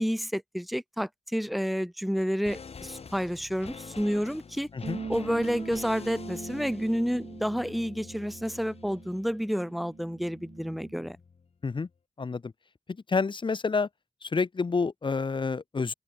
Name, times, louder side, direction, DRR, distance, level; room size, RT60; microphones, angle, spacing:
voice 1, 0.0-4.7 5.1-11.2, equal, ahead, 1.8 m, -30 dB
sound 1, 2.1-11.5 11.8-11.9, left 5 dB, 75° left, 5.0 m, -46 dB
sound 2, 4.8-11.1, right 6 dB, 85° right, 2.3 m, -42 dB
voice 2, 12.2-12.5 13.1-13.9 14.2-15.9, left 4 dB, 50° left, 1.0 m, -28 dB
cardioid pair, 55°, 10 cm